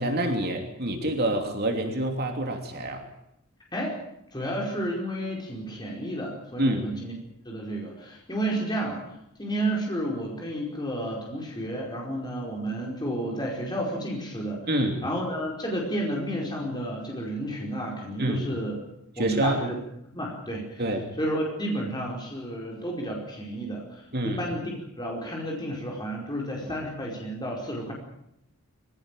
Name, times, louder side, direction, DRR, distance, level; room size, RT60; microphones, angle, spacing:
voice 1, 0.0-3.1 6.6-6.9 14.7-15.0 18.2-18.5 19.2-19.6 20.8-21.0 24.1-24.4, right 1 dB, 45° right, 3 dB, 3.0 m, -27 dB
voice 2, 4.3-7.1 7.4-9.0 9.4-14.6 15.0-18.7 19.2-19.7 20.1-20.8 21.2-27.9, right 1 dB, 20° left, -1 dB, 4.9 m, -31 dB
25.0 x 16.5 x 9.2 m, 0.78 s
head